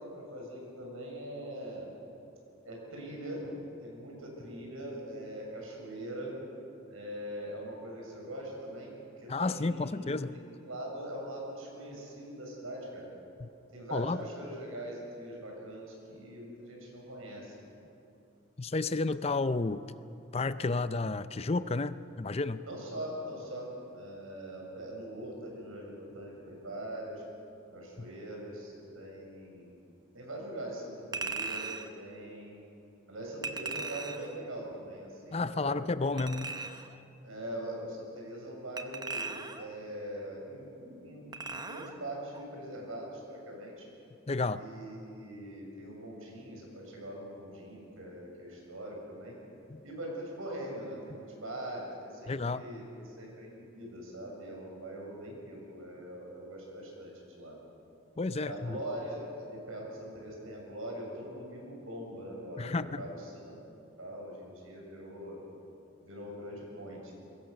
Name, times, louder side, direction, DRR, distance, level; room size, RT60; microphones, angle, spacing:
voice 1, 0.0-1.9 2.6-6.3 6.9-13.1 13.7-17.6 22.7-27.2 27.7-29.7 30.1-32.6 33.1-36.3 37.2-43.9 44.5-49.4 49.8-57.6 58.3-63.6 64.0-65.4 66.0-67.1, right 1 dB, 90° right, -1 dB, 7.1 m, -42 dB
voice 2, 9.3-10.3 13.4-13.5 13.9-14.2 18.6-19.8 20.3-22.6 28.0-28.1 35.3-36.5 44.3-44.6 52.3-52.6 58.2-58.8 62.6-63.0, left 3 dB, 30° left, 14 dB, 0.5 m, -31 dB
Chink clink, 31.1-31.9 33.4-34.4 36.2-36.9 38.8-39.7 41.3-42.0 42.3-42.5, right 3 dB, 20° right, 0.9 m, -38 dB
25.0 x 21.5 x 6.8 m, 2.8 s
head